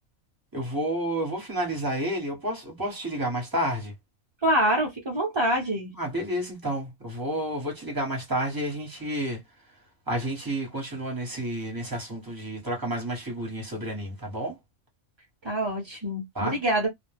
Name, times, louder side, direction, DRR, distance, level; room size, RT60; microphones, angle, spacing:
voice 1, 0.5-3.9 6.0-9.4 10.1-14.5 16.3-16.6, right 1 dB, 15° right, 1.1 m, -30 dB
voice 2, 4.4-5.9 15.4-16.9, right 1 dB, 35° right, 0.5 m, -25 dB
2.4 x 2.2 x 3.3 m
omnidirectional pair, 1.4 m